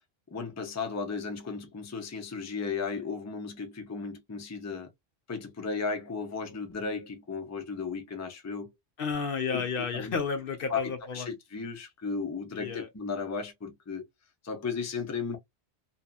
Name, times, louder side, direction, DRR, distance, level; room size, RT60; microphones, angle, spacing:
voice 1, 0.3-4.9 5.3-8.7 9.5-9.6 9.9-10.2 10.7-14.1 14.4-15.4, left 5 dB, 20° left, 0.5 m, -35 dB
voice 2, 9.0-11.3 12.6-12.9, left 5 dB, 60° left, 0.8 m, -32 dB
2.7 x 2.3 x 2.4 m
omnidirectional pair, 1.1 m